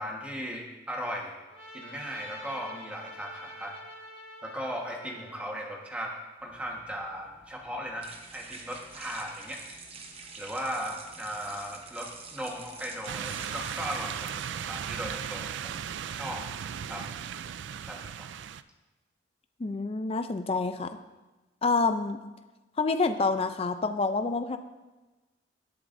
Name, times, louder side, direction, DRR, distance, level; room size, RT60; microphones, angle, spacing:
voice 1, 0.0-1.4 1.7-3.8 4.4-6.1 6.4-9.6 10.4-16.4 16.9-17.0 17.8-18.3, equal, 5° right, -1 dB, 1.3 m, -37 dB
Trumpet, 1.5-5.9, equal, 60° left, 2.0 m, -47 dB
sound 1, 6.4-15.0, right 4 dB, 30° right, 0.9 m, -47 dB
sound 2, 13.1-18.6, right 8 dB, 65° right, 0.3 m, -37 dB
voice 2, 19.6-20.9 21.6-22.2 22.8-24.6, left 3 dB, 30° left, 9 dB, 0.4 m, -27 dB
17.5 x 8.1 x 2.6 m, 1.2 s
head